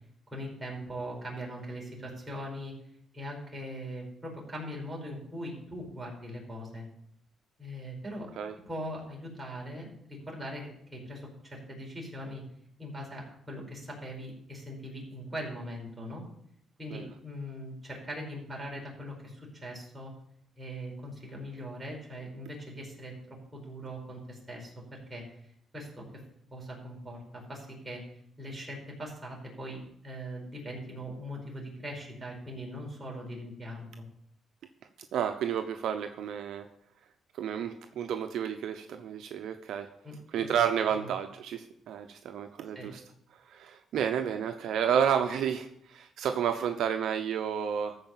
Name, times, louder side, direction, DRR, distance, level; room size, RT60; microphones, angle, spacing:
voice 1, 0.3-2.7 3.1-6.8 7.6-8.3 8.7-12.4 12.8-16.2 16.8-20.1 20.6-25.2 25.7-26.2 26.5-28.0 28.4-34.0 40.0-40.1 41.0-41.1 42.7-42.9, equal, 20° right, -2 dB, 5.0 m, -41 dB
voice 2, 35.1-36.7 37.3-39.9 40.3-43.0 43.5-48.0, right 8 dB, 75° right, 7 dB, 0.8 m, -31 dB
13.5 x 4.9 x 7.3 m, 0.71 s
cardioid pair, 90°, 0 cm